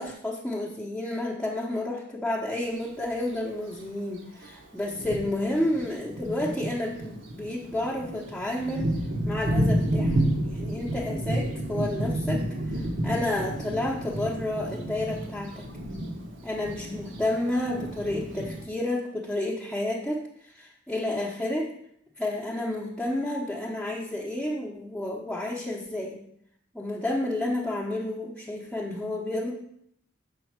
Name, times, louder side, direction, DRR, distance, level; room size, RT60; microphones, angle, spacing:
voice 1, 0.0-8.9 9.2-15.7 16.4-21.7 22.2-26.2 26.7-29.5, left 1 dB, ahead, -6 dB, 0.9 m, -31 dB
Thunder, 2.6-2.8 3.7-3.8 4.4-4.5 4.9-18.7, right 1 dB, 75° right, 1.1 m, -30 dB
6.8 x 5.2 x 4.7 m, 0.70 s
head